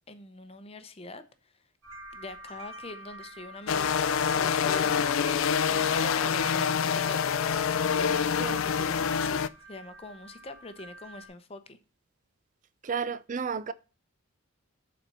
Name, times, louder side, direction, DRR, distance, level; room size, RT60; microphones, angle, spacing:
voice 1, 0.1-1.5 2.1-3.9 4.3-7.2 7.9-11.8, left 2 dB, 30° left, 0.7 m, -44 dB
sound 1, 1.8-11.3, right 1 dB, 85° right, 2.7 m, -47 dB
sound 2, 3.7-9.5, left 7 dB, 75° left, 0.4 m, -26 dB
voice 2, 12.8-13.7, right 6 dB, 35° right, 0.4 m, -32 dB
7.2 x 4.3 x 6.6 m
head